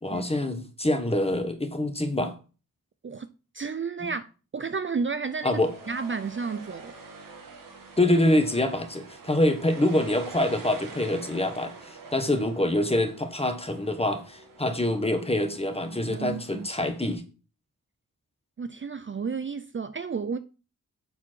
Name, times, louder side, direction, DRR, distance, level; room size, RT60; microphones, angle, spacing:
voice 1, 0.0-2.3 4.0-4.1 5.4-5.7 8.0-17.2, left 1 dB, 15° left, 1.6 m, -25 dB
voice 2, 3.5-5.6 5.9-6.9 16.1-16.7 18.6-20.4, right 5 dB, 35° right, 0.5 m, -32 dB
sound 1, 5.2-17.1, right 4 dB, 70° right, 2.1 m, -46 dB
7.2 x 7.1 x 4.6 m
wide cardioid pair, 80°, 34 cm